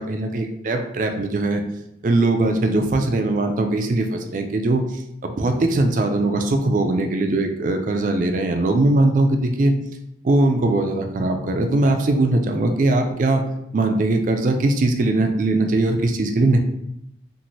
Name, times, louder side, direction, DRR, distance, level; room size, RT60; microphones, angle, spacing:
voice 1, 0.0-1.6 2.0-9.7 10.2-13.4 13.7-16.6, right 2 dB, 45° right, 5 dB, 0.3 m, -20 dB
2.6 x 2.5 x 3.0 m, 0.81 s
head